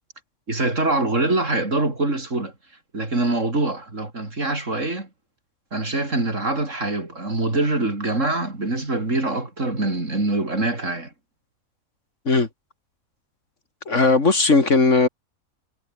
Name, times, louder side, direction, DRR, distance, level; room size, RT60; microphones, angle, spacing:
voice 1, 0.5-2.5 2.9-5.1 5.7-11.1, right 2 dB, 60° right, 5.2 m, -24 dB
voice 2, 13.9-15.1, left 3 dB, 55° left, 3.1 m, -17 dB
omnidirectional pair, 1.5 m